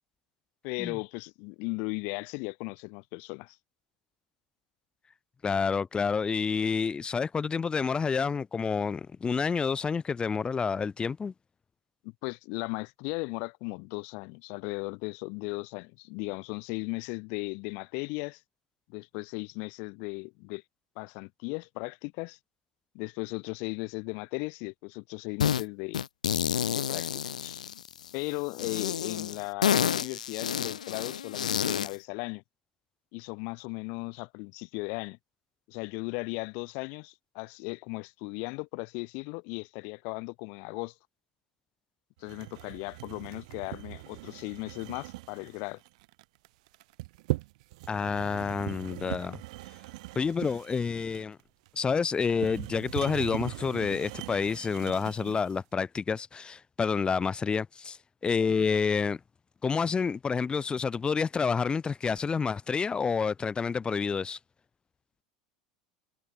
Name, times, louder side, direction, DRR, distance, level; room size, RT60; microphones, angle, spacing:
voice 1, 0.6-3.6 12.2-18.4 18.9-20.6 21.0-22.4 22.9-26.0 26.7-27.6 28.1-32.4 33.1-35.2 35.7-40.9 42.2-45.8, left 33 dB, 60° left, 4.7 m, -37 dB
voice 2, 5.4-11.3 47.9-49.4 50.2-51.4 51.7-58.0 58.2-59.2 59.6-64.4, left 5 dB, 25° left, 3.6 m, -29 dB
sound 1, 25.4-25.6 25.9-28.1 28.6-32.0, left 9 dB, 85° left, 5.2 m, -29 dB
sound 2, 42.3-55.6, right 21 dB, 70° right, 6.5 m, -40 dB
hypercardioid pair, 85°, 4 cm